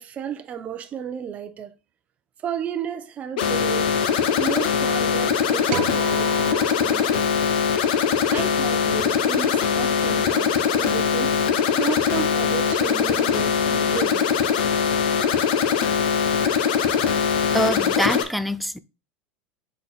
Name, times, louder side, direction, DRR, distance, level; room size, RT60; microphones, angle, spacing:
voice 1, 0.0-1.7 2.4-3.9 4.4-7.3 8.3-11.4 11.8-14.4 17.0-17.1, right 8 dB, 30° right, 0.7 m, -33 dB
sound 1, 3.4-18.2, left 7 dB, 80° left, 1.0 m, -21 dB
sound 2, 5.7-8.2, right 10 dB, 75° right, 0.7 m, -35 dB
voice 2, 17.5-18.8, equal, ahead, 0.3 m, -24 dB
6.4 x 4.1 x 4.1 m
supercardioid pair, 145°, 5 cm